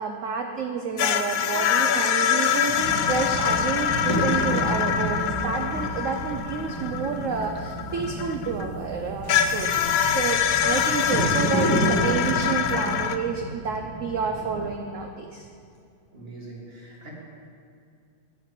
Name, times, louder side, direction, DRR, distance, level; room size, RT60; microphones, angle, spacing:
voice 1, 0.0-9.7 10.1-15.5, right 5 dB, 90° right, 4 dB, 0.6 m, -29 dB
sound 1, 1.0-8.7 9.3-13.2, left 8 dB, 85° left, 0.7 m, -25 dB
sound 2, 1.6-4.4 4.8-5.2, left 8 dB, 70° left, 1.2 m, -35 dB
voice 2, 2.4-2.8 16.1-17.1, right 2 dB, 30° right, -3 dB, 1.9 m, -43 dB
sound 3, 2.7-14.7, right 1 dB, 10° left, 1.6 m, -31 dB
11.0 x 4.5 x 8.1 m, 2.3 s
omnidirectional pair, 2.1 m